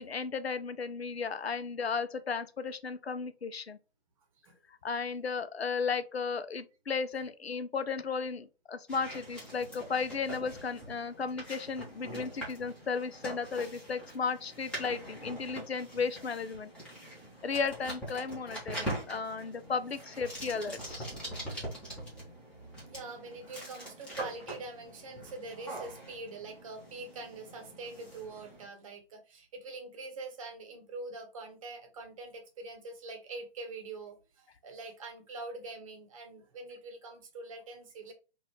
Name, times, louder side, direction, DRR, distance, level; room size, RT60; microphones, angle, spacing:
voice 1, 0.0-3.8 4.8-16.7 17.4-21.1, left 5 dB, 80° left, 0.6 m, -34 dB
sound 1, 8.9-28.7, right 1 dB, 5° left, 0.8 m, -43 dB
voice 2, 22.9-38.1, right 3 dB, 35° right, 0.9 m, -44 dB
4.0 x 2.5 x 3.0 m
figure-of-eight pair, 130°, 31 cm